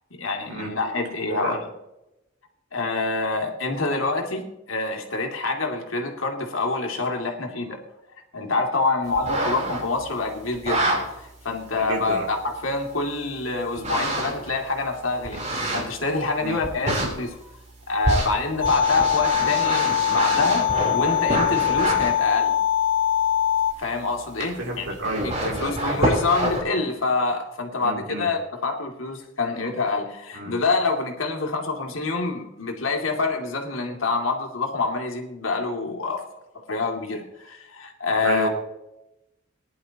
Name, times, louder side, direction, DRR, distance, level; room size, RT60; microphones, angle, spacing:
voice 1, 0.1-1.7 2.7-7.8 8.3-17.5 17.9-22.6 23.8-25.0 25.4-36.2 36.7-38.5, left 3 dB, 90° left, 2 dB, 2.4 m, -26 dB
sound 1, 9.2-10.0 10.5-11.0 11.8-11.9 13.8-14.5 15.2-16.1 16.6-17.1 18.0-22.1 24.4-24.5 24.9-26.6, right 1 dB, 35° right, 3.6 m, -26 dB
voice 2, 11.8-12.3 16.4-16.6 24.6-26.0 27.8-28.3 30.3-30.6 38.2-38.5, right 1 dB, 85° right, -2 dB, 2.8 m, -31 dB
sound 2, 18.6-23.7, left 10 dB, 70° left, 0.6 m, -22 dB
20.0 x 11.0 x 2.9 m, 0.92 s
head